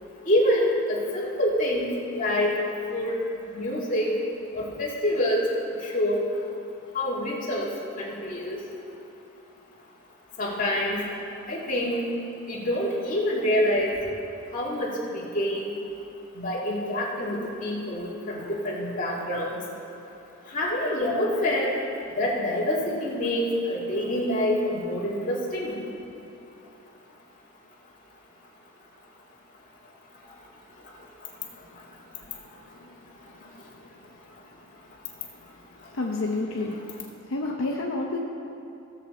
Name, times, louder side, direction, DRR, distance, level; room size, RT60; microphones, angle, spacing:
voice 1, 0.3-2.6 2.9-3.1 3.5-4.1 4.5-5.4 5.8-6.2 6.9-7.7 8.0-8.6 10.4-11.0 11.5-12.0 12.5-14.0 14.5-15.7 16.4-19.6 20.5-21.7 22.2-25.8, left 1 dB, 40° left, -5 dB, 2.0 m, -26 dB
voice 2, 33.4-33.8 35.9-36.8 37.3-38.2, left 2 dB, 70° left, -1 dB, 0.8 m, -30 dB
16.5 x 6.8 x 4.1 m, 2.8 s
head